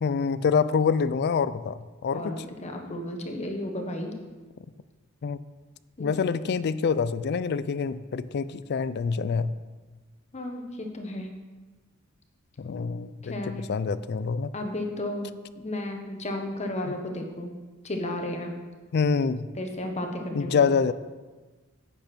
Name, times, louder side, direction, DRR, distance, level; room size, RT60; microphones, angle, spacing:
voice 1, 0.0-2.4 5.2-5.4 6.0-9.5 12.6-13.4 13.7-14.5 16.9-17.0 18.9-19.5 20.3-20.9, left 5 dB, 50° left, 15 dB, 0.4 m, -26 dB
voice 2, 2.1-4.1 6.0-6.2 10.3-11.3 13.2-13.6 14.5-17.6 17.8-18.5 19.6-20.7, left 1 dB, 30° left, 3 dB, 1.1 m, -33 dB
10.0 x 8.3 x 4.4 m, 1.3 s
head